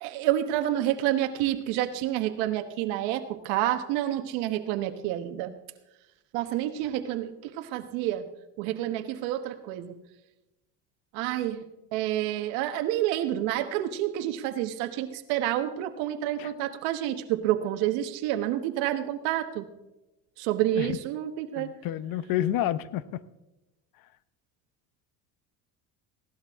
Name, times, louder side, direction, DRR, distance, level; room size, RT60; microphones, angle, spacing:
voice 1, 0.0-5.5 6.3-8.3 8.6-10.0 11.1-11.6 11.9-19.6 20.4-21.7, right 13 dB, 85° right, 8 dB, 1.2 m, -29 dB
voice 2, 21.6-23.2, left 12 dB, 60° left, 16 dB, 0.9 m, -29 dB
16.5 x 12.0 x 3.6 m, 0.99 s
cardioid pair, 110°, 39 cm